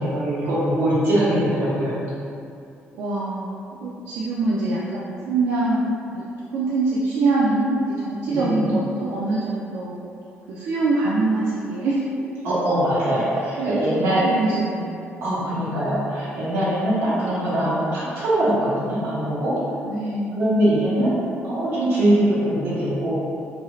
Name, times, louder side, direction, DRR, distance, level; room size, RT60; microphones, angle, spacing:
voice 1, 0.0-2.0 8.3-8.6 12.4-14.3 15.2-19.6 20.4-21.1 21.4-23.1, right 1 dB, 65° right, -10 dB, 1.1 m, -22 dB
voice 2, 2.9-6.3 6.5-10.0 10.5-12.0 13.6-15.1 15.4-15.7 19.8-20.4, right 2 dB, 85° right, -7 dB, 0.4 m, -24 dB
2.6 x 2.3 x 3.0 m, 2.5 s
cardioid pair, 160°, 4 cm